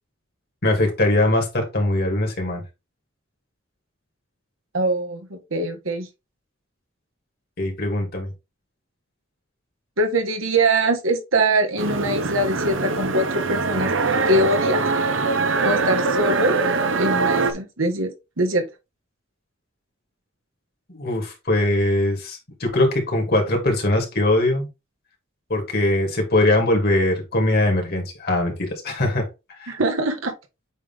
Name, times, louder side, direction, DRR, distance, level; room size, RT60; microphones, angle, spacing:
voice 1, 0.6-2.6 7.6-8.3 20.9-24.7 25.5-29.2 29.6-29.7, left 1 dB, 50° left, 2.7 m, -21 dB
voice 2, 4.7-6.1 10.0-13.9 14.3-14.8 15.6-16.6 17.0-18.1 18.4-18.7 29.7-30.3, right 1 dB, 90° right, 1.6 m, -22 dB
sound 1, 11.8-17.5, right 3 dB, 65° right, 0.9 m, -22 dB
8.2 x 3.5 x 3.6 m
head